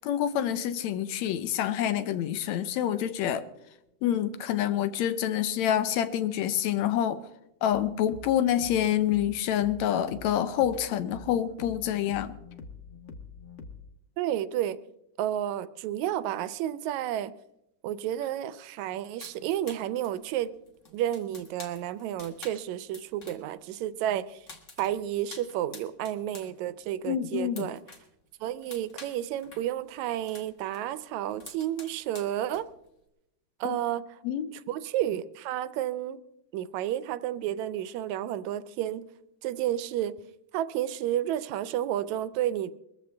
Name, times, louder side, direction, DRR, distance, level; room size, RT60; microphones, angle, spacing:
voice 1, 0.0-3.5 4.0-7.2 7.6-12.4 27.1-27.7 33.7-33.8 34.2-34.5, left 10 dB, 75° left, 2.0 m, -27 dB
sound 1, 7.7-13.8, left 2 dB, 55° left, 0.8 m, -46 dB
voice 2, 14.2-14.8 15.2-17.3 17.8-20.5 20.9-24.4 24.8-27.8 28.4-32.7 33.6-34.0 34.7-36.2 36.5-39.0 39.4-40.1 40.5-42.7, right 12 dB, 80° right, 2.0 m, -31 dB
sound 2, 19.2-23.6 23.8-26.5 26.8-28.1 28.4-30.8 31.1-32.9, left 3 dB, 30° left, 1.7 m, -48 dB
21.5 x 14.5 x 3.4 m
omnidirectional pair, 3.3 m